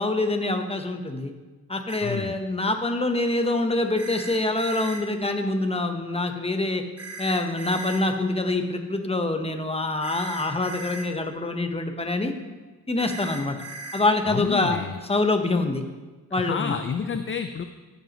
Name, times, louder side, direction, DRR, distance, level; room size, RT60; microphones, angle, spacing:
voice 1, 0.0-1.3 1.7-6.8 7.2-12.3 12.9-13.6 13.9-14.8 15.1-15.8 16.3-16.7, left 2 dB, 15° left, 5 dB, 1.0 m, -25 dB
sound 1, 1.9-2.0 4.0-5.0 7.0-8.0 10.0-11.1 13.0-14.0, right 3 dB, 40° right, 1.8 m, -38 dB
voice 2, 2.0-2.4 14.3-15.0 16.4-17.6, left 6 dB, 35° left, 8 dB, 0.4 m, -29 dB
14.0 x 8.0 x 3.0 m, 1.3 s
wide cardioid pair, 95°, 38 cm